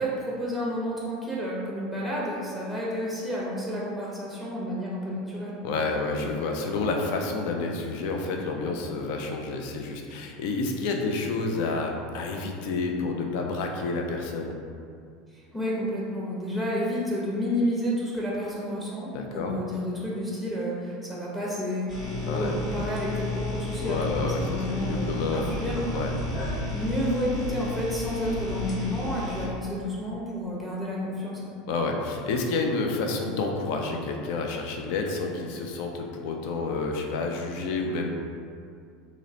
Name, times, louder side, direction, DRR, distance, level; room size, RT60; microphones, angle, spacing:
voice 1, 0.0-5.6 15.3-25.9 26.7-31.5, equal, 5° left, -6 dB, 0.6 m, -30 dB
voice 2, 5.6-14.6 19.1-19.6 22.3-22.5 23.8-25.6 25.9-26.1 31.7-38.1, left 3 dB, 60° left, 2 dB, 0.3 m, -29 dB
sound 1, 21.9-29.5, left 3 dB, 35° left, 0.8 m, -33 dB
sound 2, 25.0-29.2, right 4 dB, 70° right, 0.4 m, -39 dB
2.9 x 2.0 x 2.6 m, 2.3 s
hypercardioid pair, 80°, 0 cm